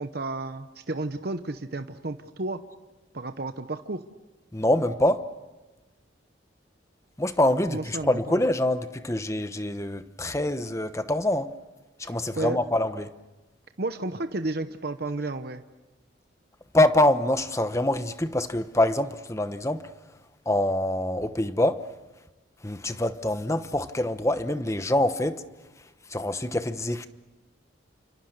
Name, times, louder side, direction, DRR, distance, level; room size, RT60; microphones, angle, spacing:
voice 1, 0.0-2.6 3.1-4.1 7.7-8.4 12.0-12.6 13.8-15.6, right 2 dB, 55° right, 0.9 m, -32 dB
voice 2, 4.5-5.2 7.2-11.5 12.0-13.1 16.7-19.8 20.5-21.8 22.6-25.4 26.1-27.1, left 1 dB, 15° left, 1.0 m, -25 dB
29.5 x 26.0 x 6.7 m
head